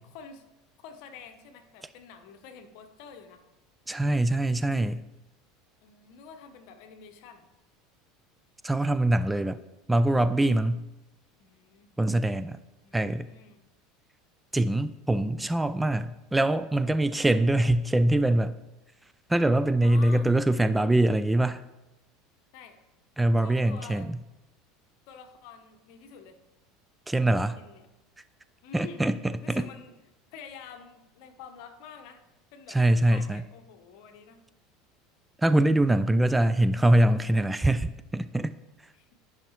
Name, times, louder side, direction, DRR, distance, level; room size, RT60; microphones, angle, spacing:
voice 1, 0.0-0.4 0.8-3.4 5.8-7.5 11.4-11.9 12.8-13.6 19.8-20.3 22.5-22.8 23.4-24.1 25.1-26.4 27.2-27.3 27.6-27.9 28.6-29.0 29.4-30.0 30.3-32.2 32.5-34.4 38.9-39.1, left 6 dB, 65° left, 7 dB, 1.0 m, -48 dB
voice 2, 3.9-5.0 8.6-9.6 9.9-10.9 12.0-12.6 12.9-13.3 14.5-18.6 19.3-21.6 23.2-24.1 27.1-27.6 28.7-29.6 32.7-33.4 35.4-38.5, right 1 dB, 10° right, 13 dB, 0.3 m, -23 dB
11.5 x 5.8 x 3.2 m, 0.99 s
hypercardioid pair, 85°, 0 cm